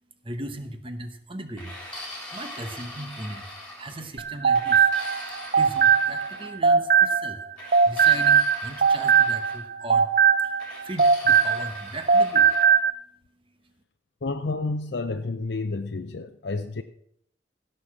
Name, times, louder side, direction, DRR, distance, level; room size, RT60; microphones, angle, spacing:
voice 1, 0.2-1.8 2.0-3.5 3.8-4.9 5.5-10.1 10.4-12.6, right 1 dB, 30° right, 1.1 m, -38 dB
sound 1, 1.6-4.1 4.5-6.5 7.6-9.6 10.6-12.7, left 1 dB, 5° left, 3.8 m, -42 dB
sound 2, 4.2-7.4 7.7-11.8 12.1-12.9, right 6 dB, 50° right, 0.6 m, -20 dB
voice 2, 14.2-16.8, left 3 dB, 80° left, 0.6 m, -30 dB
16.5 x 6.7 x 6.0 m
head